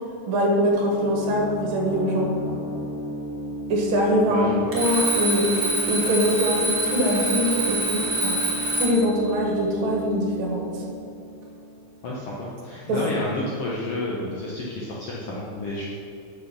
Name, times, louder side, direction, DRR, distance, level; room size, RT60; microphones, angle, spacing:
voice 1, 0.3-2.3 3.7-5.5 5.9-8.4 8.8-10.8 12.9-13.0, equal, 75° right, 0 dB, 3.1 m, -23 dB
sound 1, 0.7-12.2, right 1 dB, 85° left, 3.0 m, -34 dB
voice 2, 4.3-4.8 12.0-15.9, left 1 dB, 70° left, -4 dB, 1.5 m, -30 dB
Alarm, 4.7-9.1, right 1 dB, 30° right, 1.7 m, -25 dB
7.7 x 6.7 x 6.0 m, 2.5 s
omnidirectional pair, 4.0 m